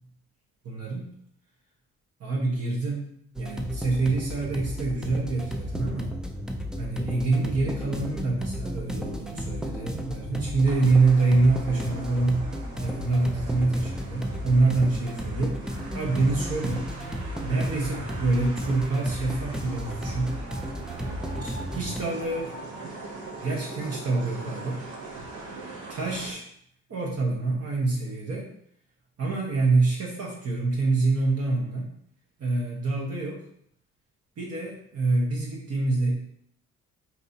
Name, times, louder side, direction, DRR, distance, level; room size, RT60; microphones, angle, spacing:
voice 1, 0.6-1.1 2.2-6.1 6.7-12.4 12.8-16.9 17.4-20.4 21.3-22.5 23.4-24.8 25.9-26.4 26.9-28.5 29.2-31.9 32.4-33.4 34.4-36.1, right 3 dB, 55° right, -3 dB, 1.1 m, -26 dB
sound 1, 3.4-22.0, equal, ahead, 0.4 m, -34 dB
sound 2, 10.6-26.3, right 3 dB, 75° right, 1.1 m, -41 dB
5.2 x 2.8 x 2.7 m, 0.67 s
cardioid pair, 90°, 30 cm